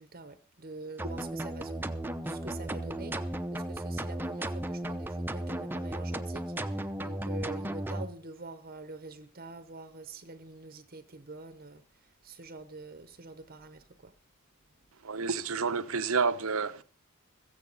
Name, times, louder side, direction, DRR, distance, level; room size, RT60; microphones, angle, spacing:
voice 1, 0.0-1.9 2.3-11.8 12.2-14.1, right 3 dB, 45° right, 0.9 m, -46 dB
sound 1, 1.0-8.1, right 1 dB, 10° right, 0.7 m, -35 dB
voice 2, 15.0-16.8, right 5 dB, 75° right, 0.9 m, -29 dB
16.0 x 15.0 x 4.0 m
head